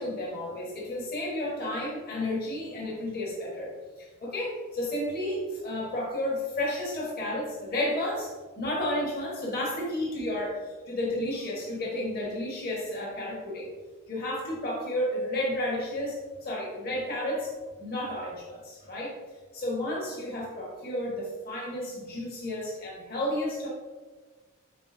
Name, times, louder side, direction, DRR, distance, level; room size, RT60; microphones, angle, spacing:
voice 1, 0.0-3.7 4.0-8.3 8.6-13.7 14.1-17.5 17.8-19.1 19.5-23.7, left 1 dB, 45° left, -4 dB, 1.6 m, -32 dB
10.5 x 4.3 x 2.7 m, 1.4 s
head